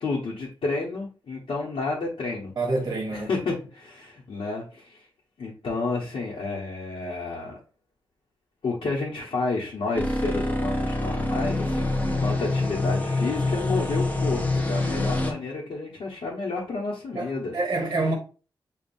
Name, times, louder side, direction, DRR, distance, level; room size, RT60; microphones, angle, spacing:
voice 1, 0.0-2.5 3.1-5.1 5.4-7.6 8.6-17.5 18.0-18.1, left 3 dB, 85° left, 1.0 m, -30 dB
voice 2, 2.6-3.3 17.1-18.1, right 2 dB, 40° right, 0.8 m, -27 dB
sound 1, 9.9-15.3, left 2 dB, 20° left, 0.6 m, -26 dB
7.0 x 2.4 x 2.5 m
wide cardioid pair, 175°, 9 cm